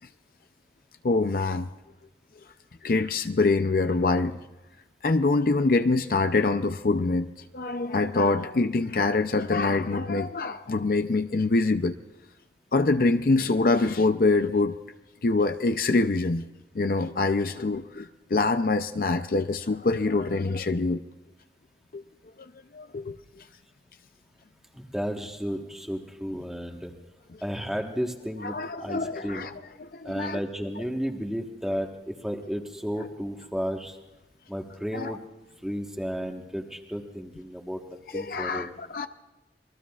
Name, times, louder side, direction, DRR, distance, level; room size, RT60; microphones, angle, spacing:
voice 1, 1.0-1.7 2.8-4.4 5.0-11.9 12.7-14.8 15.2-16.4 16.7-21.0 21.9-22.0 22.7-23.2 28.4-29.5 29.8-30.4 34.9-35.2 38.1-39.1, left 3 dB, 50° left, 9 dB, 0.5 m, -25 dB
voice 2, 24.7-26.9 27.4-29.5 30.0-34.0 34.5-35.2 35.6-38.7, equal, 5° right, 2 dB, 1.3 m, -33 dB
27.0 x 21.5 x 2.4 m, 1.1 s
head